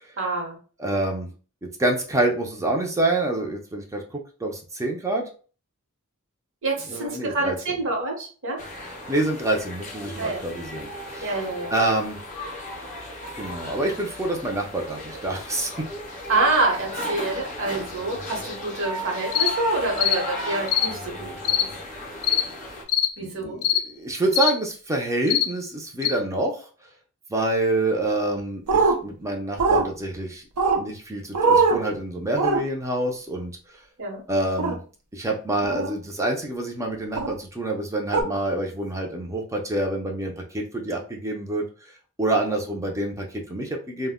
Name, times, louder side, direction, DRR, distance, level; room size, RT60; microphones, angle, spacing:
voice 1, 0.2-0.6 6.6-8.6 10.2-10.4 11.2-11.7 16.3-21.7 23.2-23.6 34.0-34.2, right 2 dB, 60° right, 0 dB, 0.9 m, -27 dB
voice 2, 0.8-1.3 1.8-5.2 6.9-7.5 9.1-11.3 11.7-12.2 13.3-15.9 23.2-26.7 27.3-30.4 30.8-33.5 34.3-34.8 35.1-41.6 42.2-44.1, right 2 dB, 15° right, 2 dB, 0.4 m, -27 dB
sound 1, 8.6-22.8, left 1 dB, 35° left, 0.5 m, -35 dB
sound 2, 19.3-19.5 20.0-20.2 20.7-20.9 21.4-21.7 22.2-22.4 22.9-23.1 23.6-23.8 24.3-24.5 25.3-25.5 26.0-26.1, left 10 dB, 85° left, 0.4 m, -21 dB
sound 3, 28.7-28.9 29.6-29.8 30.6-30.8 31.3-31.8 32.4-32.6 34.6-34.7 35.6-35.9 37.2-37.3 38.1-38.2, right 4 dB, 85° right, 0.5 m, -20 dB
2.1 x 2.1 x 3.5 m, 0.39 s
head